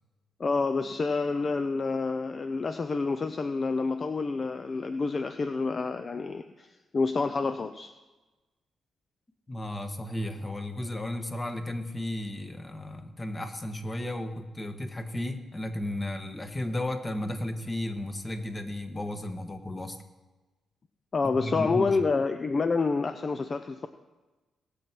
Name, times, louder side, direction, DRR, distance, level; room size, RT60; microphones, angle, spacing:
voice 1, 0.4-6.7 6.9-7.9 21.1-23.9, left 4 dB, 40° left, 8 dB, 0.6 m, -28 dB
voice 2, 9.5-20.0 21.4-22.0, left 1 dB, 25° left, 6 dB, 1.6 m, -34 dB
19.0 x 7.4 x 4.6 m, 1.2 s
cardioid pair, 75°, 0 cm